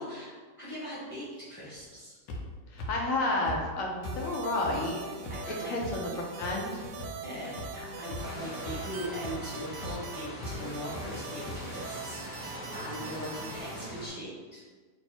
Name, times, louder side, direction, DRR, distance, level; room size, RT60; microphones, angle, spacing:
voice 1, 0.0-2.2 5.3-5.7 7.2-14.6, equal, 20° right, -9 dB, 1.1 m, -40 dB
sound 1, 2.3-2.4 2.8-2.9 3.5-3.6 4.0-4.2 4.6-4.7 5.2-5.4 5.8-5.9 6.4-6.5 7.0-7.1 7.6-7.7 8.1-8.3 8.6-8.8 9.2-9.3 9.8-9.9 10.4-10.5 11.0-11.1 11.5-11.6, left 1 dB, 85° left, 1.3 m, -38 dB
voice 2, 2.7-5.0 5.5-6.1 6.4-6.9, left 2 dB, 65° left, 0 dB, 0.8 m, -31 dB
sound 2, 4.0-13.9, right 3 dB, 75° right, 1.1 m, -42 dB
sound 3, 8.1-14.1, equal, 30° left, 0.8 m, -42 dB
3.3 x 2.6 x 4.2 m, 1.5 s
omnidirectional pair, 1.9 m